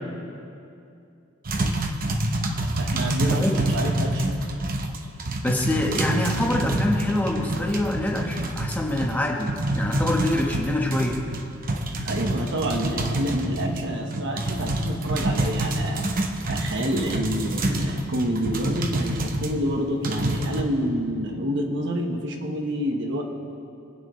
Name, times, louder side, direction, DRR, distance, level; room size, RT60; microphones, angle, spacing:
sound 1, 1.5-19.5 20.0-20.6, right 1 dB, 45° right, 0.9 m, -27 dB
voice 1, 2.8-4.4 12.0-23.2, equal, 60° right, 2 dB, 1.3 m, -28 dB
voice 2, 5.4-11.2, left 1 dB, 10° left, -1 dB, 1.3 m, -25 dB
24.5 x 9.0 x 3.2 m, 2.6 s
head